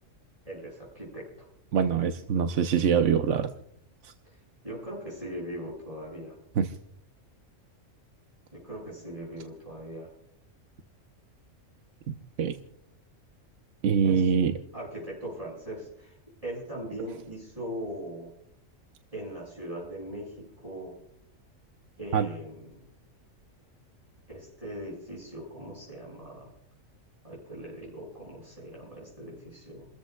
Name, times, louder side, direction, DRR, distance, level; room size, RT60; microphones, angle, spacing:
voice 1, 0.4-1.2 4.6-6.4 8.5-10.1 14.0-14.3 14.7-16.2 16.4-18.3 19.1-20.9 22.0-22.7 24.3-26.5 27.2-29.9, right 1 dB, 25° right, -6 dB, 6.8 m, -40 dB
voice 2, 1.7-3.5 4.0-4.1 6.6-6.7 12.1-12.5 13.8-14.5 22.1-22.3, right 7 dB, 65° right, 6 dB, 1.0 m, -24 dB
30.0 x 14.0 x 2.3 m, 0.72 s
omnidirectional pair, 1.4 m